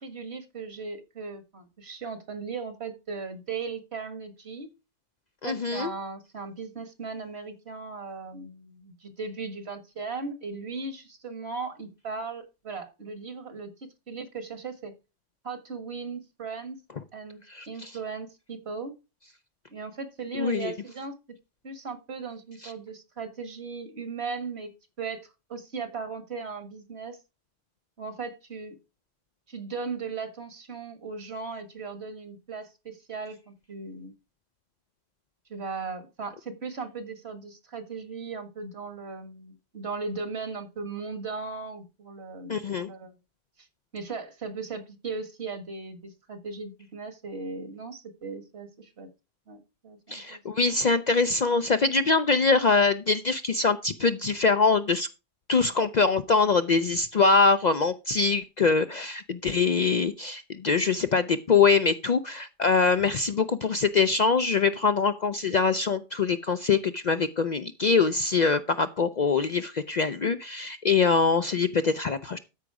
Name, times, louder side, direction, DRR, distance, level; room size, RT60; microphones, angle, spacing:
voice 1, 0.0-4.7 5.4-14.9 15.4-16.8 17.1-17.4 17.7-19.0 19.7-21.2 21.6-24.7 25.0-27.2 28.0-28.8 29.5-34.1 35.5-43.2 43.9-49.1 49.5-50.4, right 4 dB, 65° right, 9 dB, 1.9 m, -37 dB
voice 2, 5.4-5.9 17.5-17.9 20.4-20.7 42.5-42.9 50.1-55.1 55.5-72.4, left 4 dB, 50° left, 9 dB, 0.5 m, -23 dB
13.0 x 5.1 x 4.8 m, 0.28 s
omnidirectional pair, 1.2 m